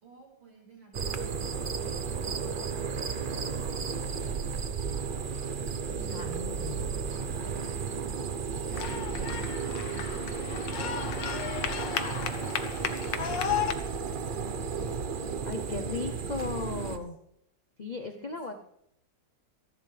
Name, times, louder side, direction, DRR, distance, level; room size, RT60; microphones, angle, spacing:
voice 1, 0.0-4.7 12.2-13.7 14.1-14.6 18.0-18.6, right 3 dB, 75° right, -2 dB, 5.8 m, -54 dB
sound 1, 0.9-17.0, right 6 dB, 50° right, 0.6 m, -33 dB
voice 2, 6.1-6.9 15.5-17.2 17.8-18.5, left 3 dB, 55° left, 6 dB, 0.4 m, -36 dB
sound 2, 8.7-13.7, left 8 dB, 75° left, 1.7 m, -33 dB
27.0 x 11.5 x 3.3 m, 0.78 s
omnidirectional pair, 2.0 m